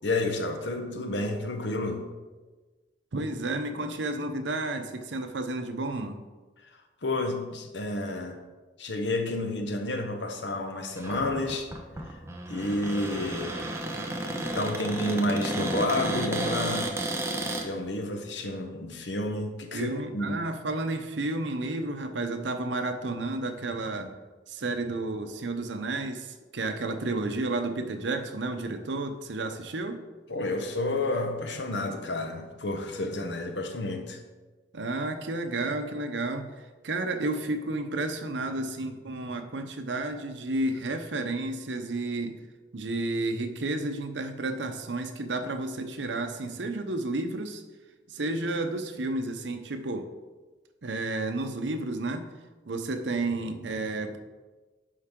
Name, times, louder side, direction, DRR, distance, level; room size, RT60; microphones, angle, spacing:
voice 1, 0.0-2.0 7.0-8.4 8.8-11.7 12.5-13.7 14.5-17.0 17.6-20.4 30.3-34.2, left 2 dB, 80° left, 5 dB, 1.0 m, -30 dB
voice 2, 3.1-6.2 19.7-24.2 24.5-30.0 34.7-42.4 42.7-47.6 48.1-50.1 50.8-52.3 52.6-54.2, right 2 dB, 90° right, 8 dB, 0.8 m, -31 dB
Cupboard open or close, 11.0-17.7, right 1 dB, 15° right, 0.7 m, -32 dB
11.0 x 4.8 x 3.7 m, 1.3 s
head